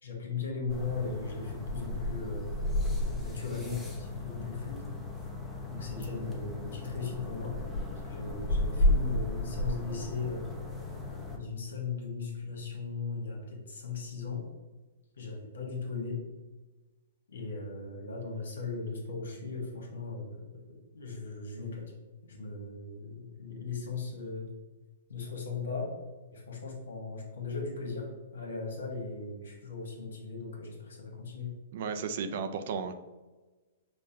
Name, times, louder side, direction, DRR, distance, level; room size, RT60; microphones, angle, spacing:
voice 1, 0.0-4.9 5.7-7.6 8.0-10.5 11.3-14.4 15.2-16.2 17.3-20.6 20.9-21.8 22.3-24.5 25.1-25.9 26.3-31.5, left 4 dB, 80° left, 0 dB, 1.1 m, -38 dB
sound 1, 0.7-11.4, left 1 dB, 10° left, 0.6 m, -33 dB
voice 2, 31.7-32.9, right 6 dB, 55° right, 8 dB, 0.4 m, -34 dB
5.3 x 2.1 x 2.7 m, 1.2 s
hypercardioid pair, 135°, 0 cm